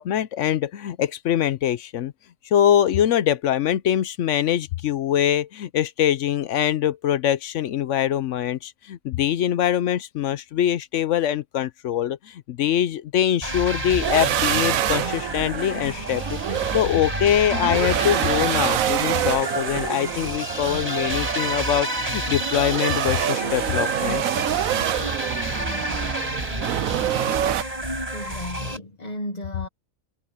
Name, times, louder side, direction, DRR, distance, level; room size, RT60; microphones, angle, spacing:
voice 1, 0.0-2.1 2.4-24.2, left 10 dB, 70° left, 0.9 m, -23 dB
sound 1, 13.4-28.8, right 1 dB, 25° right, 7.0 m, -30 dB
sound 2, 14.0-27.6, right 11 dB, 75° right, 1.1 m, -26 dB
voice 2, 28.1-29.7, left 1 dB, 30° left, 1.4 m, -34 dB
omnidirectional pair, 1.4 m